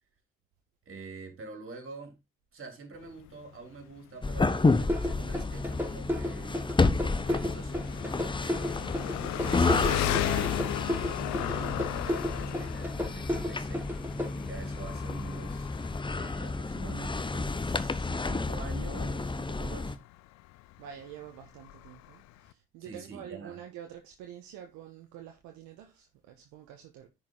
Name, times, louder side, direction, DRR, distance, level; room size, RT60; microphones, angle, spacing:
voice 1, 0.9-2.2 2.5-6.6 7.0-8.9 9.4-20.0 22.8-23.6, right 4 dB, 45° right, 3.7 m, -46 dB
Engine, 2.9-22.5, left 17 dB, 65° left, 0.6 m, -37 dB
sound 1, 4.2-20.0, left 3 dB, 15° left, 0.9 m, -31 dB
sound 2, 4.9-14.3, left 1 dB, 5° right, 3.2 m, -32 dB
voice 2, 20.8-27.1, right 10 dB, 70° right, 1.4 m, -47 dB
10.5 x 5.5 x 3.9 m
hypercardioid pair, 50°, 30 cm